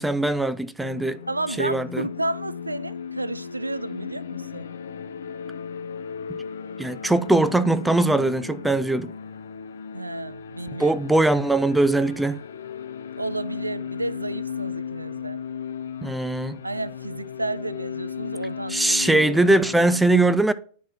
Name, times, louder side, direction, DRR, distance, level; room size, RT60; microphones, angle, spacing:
voice 1, 0.0-1.2 1.6-2.1 6.3-6.4 6.8-9.1 10.8-12.4 16.0-16.6 18.7-20.5, right 2 dB, 5° right, 0.4 m, -21 dB
sound 1, 0.8-20.0, left 7 dB, 65° left, 0.5 m, -36 dB
voice 2, 1.3-4.7 9.9-10.9 13.2-15.4 16.6-19.1, right 2 dB, 85° right, 0.3 m, -31 dB
9.4 x 3.7 x 4.4 m
figure-of-eight pair, 95°, 0 cm